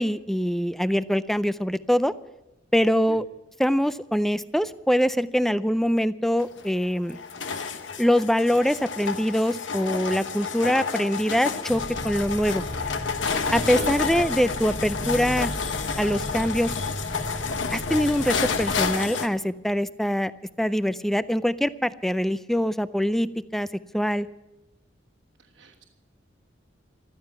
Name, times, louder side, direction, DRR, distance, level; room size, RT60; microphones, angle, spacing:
voice 1, 0.0-2.1 2.7-3.2 3.6-7.2 8.0-12.6 13.5-15.5 16.0-16.7 17.7-20.3 20.6-23.7 23.9-24.3, equal, ahead, 15 dB, 0.4 m, -24 dB
sound 1, 6.4-19.3, left 5 dB, 80° left, 1.1 m, -30 dB
sound 2, 11.7-18.8, equal, 60° left, 4.9 m, -35 dB
voice 2, 13.5-13.9 25.6-25.8, right 2 dB, 80° right, -3 dB, 1.5 m, -38 dB
15.0 x 13.5 x 5.8 m, 1.0 s
head